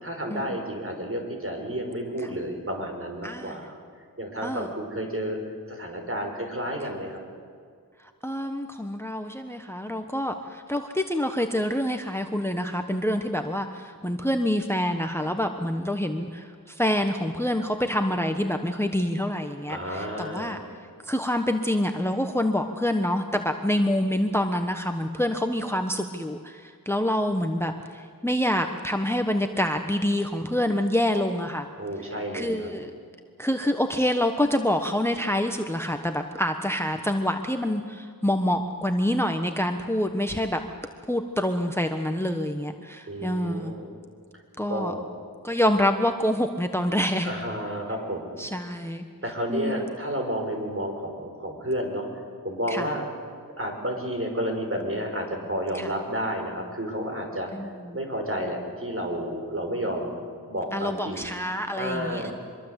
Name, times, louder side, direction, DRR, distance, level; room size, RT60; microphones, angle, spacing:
voice 1, 0.0-3.7 4.2-5.4 5.7-7.2 19.7-20.6 31.8-32.7 43.1-43.9 44.7-45.1 47.2-48.3 49.2-52.1 52.4-53.0 53.6-57.5 57.9-60.1 60.5-61.3 61.7-62.3, equal, 35° right, 2 dB, 5.8 m, -31 dB
voice 2, 3.2-3.6 4.4-4.7 8.0-31.7 32.3-32.9 33.4-40.6 41.1-43.7 44.6-44.9 45.4-47.3 48.4-49.0 49.5-49.9 52.7-52.9 55.7-55.9 57.5-58.0 60.7-62.3, left 1 dB, 5° left, 6 dB, 1.2 m, -27 dB
25.0 x 23.0 x 8.2 m, 2.1 s
wide cardioid pair, 60°, 36 cm